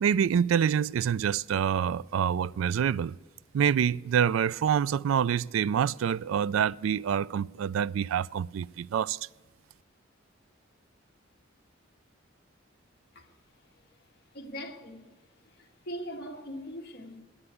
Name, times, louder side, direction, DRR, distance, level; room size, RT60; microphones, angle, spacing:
voice 1, 0.0-3.1 3.5-9.2, right 8 dB, 90° right, 0.3 m, -26 dB
voice 2, 14.3-15.0 15.9-17.2, equal, 55° left, 1.8 m, -40 dB
11.0 x 9.8 x 8.3 m
head